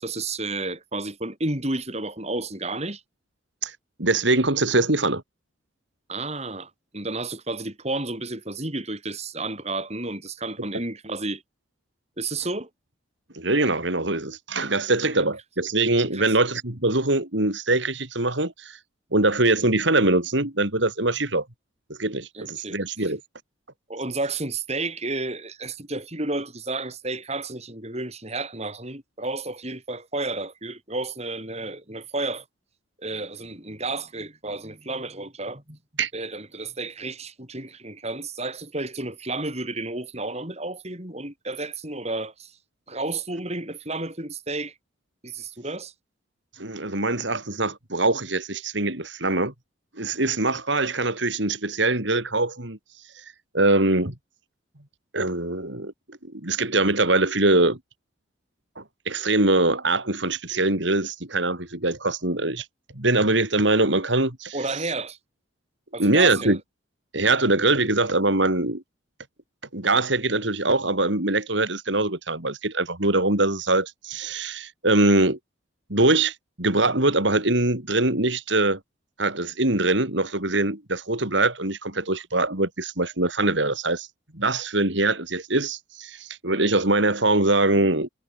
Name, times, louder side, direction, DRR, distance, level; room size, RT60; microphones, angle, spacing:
voice 1, 0.0-3.0 6.1-11.4 12.2-12.7 16.1-16.3 22.3-23.1 23.9-32.4 33.0-35.8 36.1-42.6 42.9-44.7 45.2-45.9 64.5-65.2 65.9-66.6, right 2 dB, 35° right, 6.9 m, -31 dB
voice 2, 3.6-5.2 13.3-18.8 19.1-21.5 21.9-23.2 36.0-36.1 46.5-49.5 50.0-54.1 55.1-57.8 58.8-62.7 63.0-64.8 66.0-66.6 67.1-68.8 69.7-75.4 75.9-78.8 79.2-84.1 84.3-88.1, right 2 dB, 65° right, 3.9 m, -23 dB
head